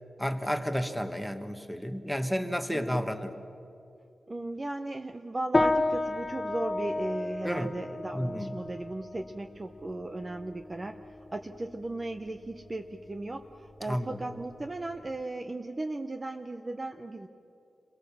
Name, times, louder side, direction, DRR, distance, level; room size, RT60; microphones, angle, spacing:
voice 1, 0.2-3.3 7.4-7.7 8.1-8.5 13.9-14.2, equal, ahead, 7 dB, 1.4 m, -31 dB
voice 2, 2.7-3.1 4.3-11.0 11.3-17.3, right 2 dB, 25° right, 6 dB, 0.8 m, -36 dB
sound 1, 5.5-15.2, left 2 dB, 20° left, 0.9 m, -33 dB
29.0 x 22.0 x 7.2 m, 2.7 s
wide cardioid pair, 145°, 0 cm